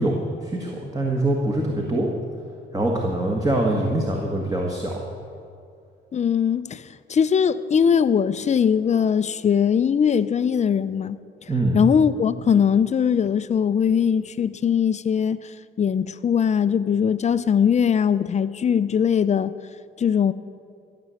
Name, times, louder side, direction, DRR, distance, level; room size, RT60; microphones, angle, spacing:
voice 1, 0.0-2.1 2.7-5.1 11.5-11.8, right 1 dB, 20° right, 1.6 m, -24 dB
voice 2, 6.1-11.2 11.7-19.5 20.0-20.3, left 7 dB, 35° left, 0.5 m, -21 dB
15.0 x 7.0 x 7.7 m
cardioid pair, 90°, 20 cm